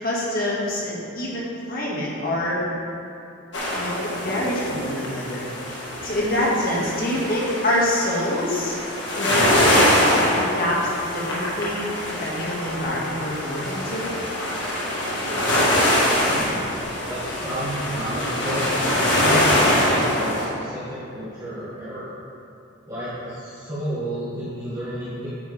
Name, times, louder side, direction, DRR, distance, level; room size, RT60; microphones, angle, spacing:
voice 1, 0.0-2.6 3.7-5.5 6.0-8.8 9.1-9.7 10.3-11.9 12.2-14.1, left 1 dB, 45° left, -5 dB, 2.0 m, -26 dB
sound 1, 3.5-20.5, left 1 dB, 60° left, 1.8 m, -23 dB
voice 2, 15.6-16.7 17.0-22.1 22.8-25.3, equal, 20° right, -13 dB, 2.3 m, -32 dB
9.5 x 9.3 x 3.5 m, 2.8 s
head